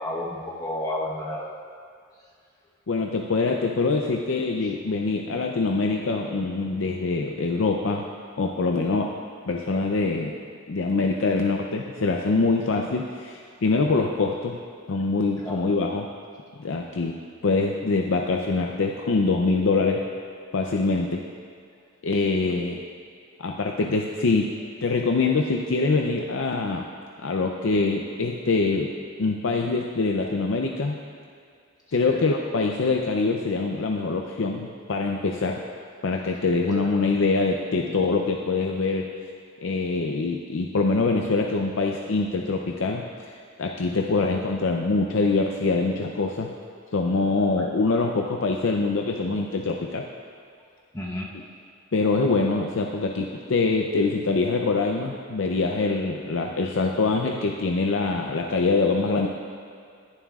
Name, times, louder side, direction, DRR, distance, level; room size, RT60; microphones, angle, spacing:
voice 1, 0.0-1.5 15.4-15.6 22.4-22.5 32.0-32.2 50.9-51.3, left 1 dB, 15° left, -4 dB, 1.0 m, -31 dB
voice 2, 2.9-8.1 8.4-9.1 9.5-10.3 10.7-14.6 14.9-16.1 16.6-17.2 17.4-20.1 20.5-21.2 22.0-22.8 23.4-24.5 24.8-26.9 27.2-28.9 29.2-31.0 31.9-35.6 36.0-39.1 39.6-43.3 43.6-46.5 46.9-50.1 51.3-51.4 51.9-59.3, left 3 dB, 80° left, 1 dB, 0.5 m, -24 dB
20.0 x 7.3 x 2.4 m, 2.3 s
head